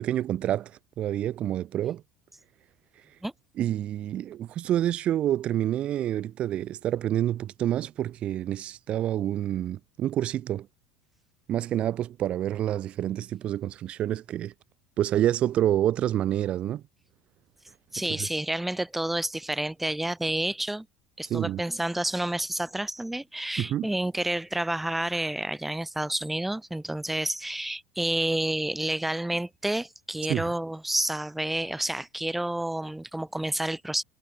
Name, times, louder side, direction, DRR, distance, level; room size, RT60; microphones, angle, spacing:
voice 1, 0.0-2.0 3.0-3.1 3.6-10.7 11.5-14.5 15.0-16.8 21.2-21.6 23.6-23.9 30.3-30.4, right 12 dB, 45° right, 2.8 m, -28 dB
voice 2, 17.9-20.9 21.2-34.0, right 1 dB, 5° right, 8.0 m, -29 dB
hypercardioid pair, 85°, 3 cm